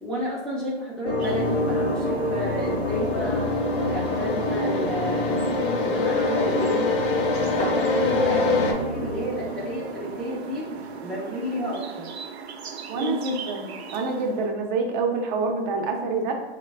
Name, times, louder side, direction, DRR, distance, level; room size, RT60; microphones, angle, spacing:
voice 1, 0.0-3.5 3.9-7.0 7.5-12.1 12.9-13.4, equal, ahead, -6 dB, 0.4 m, -31 dB
sound 1, 1.0-11.1, left 1 dB, 85° left, 0.9 m, -28 dB
sound 2, 1.2-14.5, right 5 dB, 90° right, 0.5 m, -39 dB
sound 3, 2.9-8.7, left 4 dB, 60° left, 0.7 m, -26 dB
voice 2, 12.9-16.3, right 4 dB, 45° right, 3 dB, 0.6 m, -27 dB
3.1 x 2.1 x 3.3 m, 1.1 s
hypercardioid pair, 120°, 31 cm